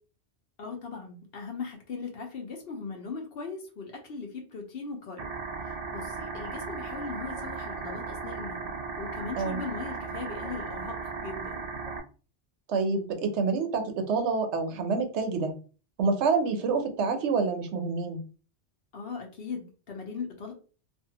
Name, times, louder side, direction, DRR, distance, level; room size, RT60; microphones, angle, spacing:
voice 1, 0.6-5.3 5.9-11.0 11.2-11.7 18.9-20.5, left 4 dB, 60° left, 2 dB, 0.9 m, -39 dB
sound 1, 5.2-12.0, right 4 dB, 60° right, 0.4 m, -36 dB
voice 2, 12.7-15.5 16.0-18.2, right 4 dB, 80° right, 6 dB, 0.9 m, -27 dB
2.6 x 2.4 x 2.8 m, 0.36 s
omnidirectional pair, 1.2 m